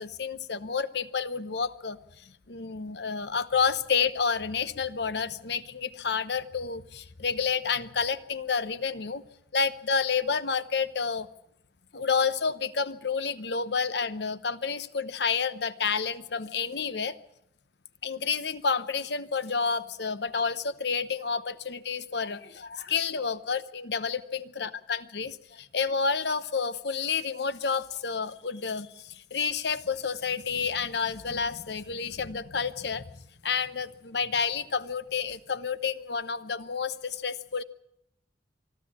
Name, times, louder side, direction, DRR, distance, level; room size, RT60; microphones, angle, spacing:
voice 1, 0.0-9.2 9.5-11.3 11.9-17.2 18.0-33.1 33.4-37.6, left 5 dB, 65° left, 13 dB, 0.9 m, -30 dB
24.5 x 13.0 x 8.6 m, 0.78 s
head